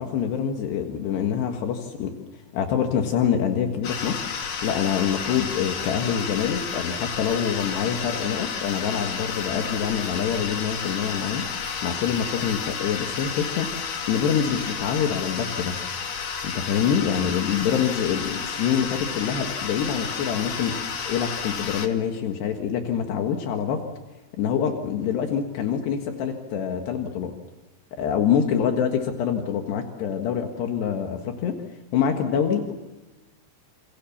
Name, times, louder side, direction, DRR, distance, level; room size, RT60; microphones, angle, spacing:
voice 1, 0.0-2.1 2.5-4.3 4.6-11.5 11.8-13.7 14.1-15.8 16.4-20.8 21.1-23.8 24.4-27.3 27.9-31.6 31.9-32.7, left 8 dB, 75° left, 4 dB, 3.8 m, -25 dB
sound 1, 3.8-21.9, left 6 dB, 55° left, 3.4 m, -31 dB
29.5 x 28.0 x 7.3 m, 1.1 s
omnidirectional pair, 4.9 m